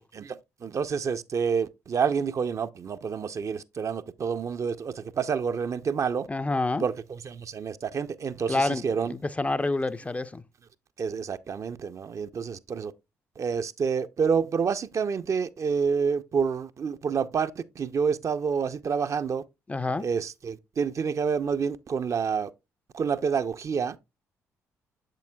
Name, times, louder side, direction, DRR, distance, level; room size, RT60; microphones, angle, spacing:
voice 1, 0.1-6.3 6.8-9.1 11.0-12.9 13.4-19.4 20.0-22.5 22.9-24.0, right 6 dB, 40° right, 0.5 m, -28 dB
voice 2, 6.3-6.9 8.5-8.8 9.1-10.4 19.7-20.1, left 2 dB, 15° left, 0.4 m, -27 dB
7.6 x 7.1 x 2.2 m
figure-of-eight pair, 45°, 8 cm